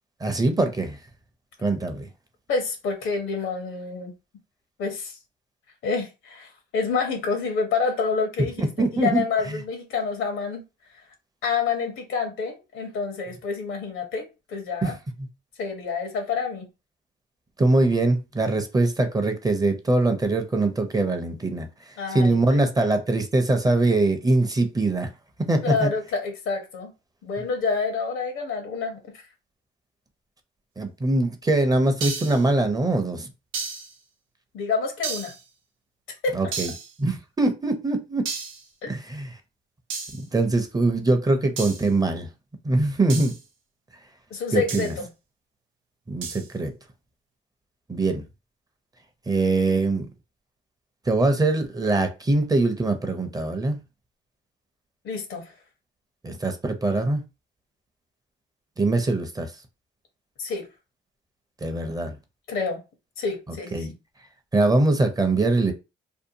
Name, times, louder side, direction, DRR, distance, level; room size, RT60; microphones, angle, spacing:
voice 1, 0.2-1.0 1.6-2.1 8.8-9.2 14.8-14.9 15.2-15.3 17.6-21.7 22.1-25.1 25.5-25.9 30.8-33.3 36.3-36.7 37.0-38.2 38.9-39.3 40.3-42.3 42.6-43.3 44.5-44.9 46.1-46.7 47.9-48.2 49.3-50.1 51.1-53.8 56.2-57.2 58.8-59.5 61.6-62.2 63.7-63.9 64.5-65.7, right 2 dB, 20° right, 0.5 m, -22 dB
voice 2, 2.5-4.1 4.8-5.2 5.8-10.6 11.4-14.9 15.6-16.7 22.0-22.6 25.6-26.9 27.2-29.2 34.5-35.3 36.2-36.3 38.8-38.9 44.3-45.1 55.0-55.5 60.4-60.7 62.5-62.8 63.2-63.9, left 5 dB, 80° left, 0.8 m, -28 dB
sound 1, 32.0-32.5 33.5-33.9 35.0-35.4 36.5-36.9 38.3-38.6 39.9-40.2 41.6-41.9 43.1-43.4 44.7-45.0 46.2-46.5, right 5 dB, 90° right, 0.6 m, -33 dB
2.6 x 2.1 x 2.7 m
cardioid pair, 90°, 20 cm